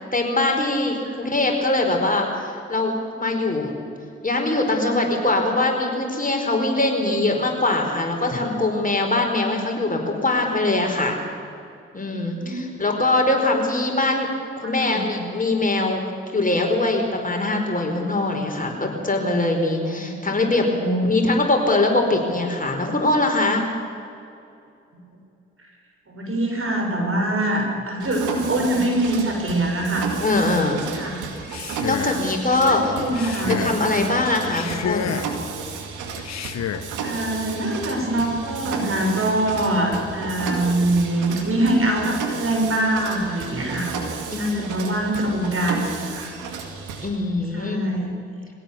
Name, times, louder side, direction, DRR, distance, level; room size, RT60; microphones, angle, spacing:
voice 1, 0.1-3.7 4.2-11.2 11.9-14.3 14.6-16.0 16.3-20.6 21.0-23.6 30.2-30.8 31.8-32.9 33.5-35.2 44.3-44.9 47.0-47.8, left 2 dB, 25° left, 2 dB, 4.7 m, -22 dB
voice 2, 12.3-12.8 14.8-15.2 19.9-20.2 20.8-21.1 26.1-30.2 30.9-31.2 32.0-32.2 32.6-33.6 33.9-34.1 37.0-43.9 44.4-46.3 47.5-48.1, right 1 dB, 45° right, 1 dB, 6.6 m, -24 dB
Mechanisms, 28.0-47.1, right 5 dB, 85° right, 2.2 m, -33 dB
Male speech man speaking, 31.4-32.3 33.1-33.8 34.4-35.4 36.2-36.9, left 9 dB, 65° left, 0.9 m, -30 dB
23.0 x 16.5 x 7.1 m, 2.6 s
hypercardioid pair, 40°, 30 cm